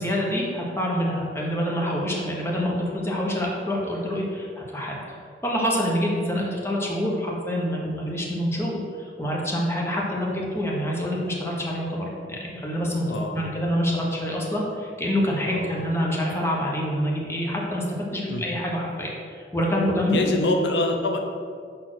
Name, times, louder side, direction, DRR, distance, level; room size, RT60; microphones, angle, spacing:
voice 1, 0.0-5.2 5.4-13.1 13.3-17.8 18.1-20.2, equal, 15° left, -3 dB, 1.0 m, -26 dB
voice 2, 13.1-13.4 15.4-15.9 18.3-18.6 20.1-21.2, left 2 dB, 75° left, 3 dB, 0.7 m, -25 dB
5.2 x 4.3 x 6.1 m, 2.2 s
head